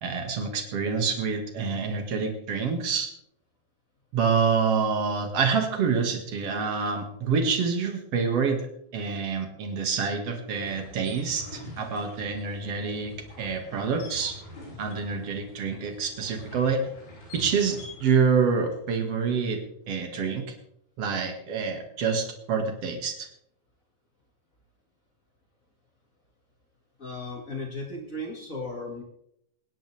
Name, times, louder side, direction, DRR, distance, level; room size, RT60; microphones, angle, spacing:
voice 1, 0.0-3.1 4.1-13.1 13.4-14.4 14.8-16.9 17.3-19.6 19.9-20.5 21.0-23.3, right 5 dB, 50° right, 4 dB, 2.1 m, -27 dB
sound 1, 10.5-18.0, left 1 dB, 85° left, 9.9 m, -45 dB
voice 2, 27.0-29.0, left 2 dB, 70° left, -1 dB, 0.7 m, -35 dB
26.5 x 10.0 x 3.4 m, 0.74 s
omnidirectional pair, 5.3 m